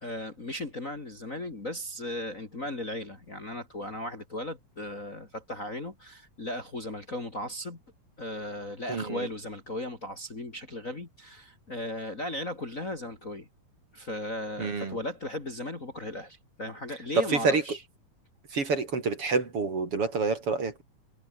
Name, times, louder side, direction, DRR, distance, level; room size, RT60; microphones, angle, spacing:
voice 1, 0.0-7.8 8.2-13.5 13.9-17.8, left 1 dB, 25° left, 2.6 m, -36 dB
voice 2, 8.9-9.3 14.6-15.0 17.1-17.6 18.5-20.8, right 4 dB, 40° right, 4.0 m, -27 dB
omnidirectional pair, 3.9 m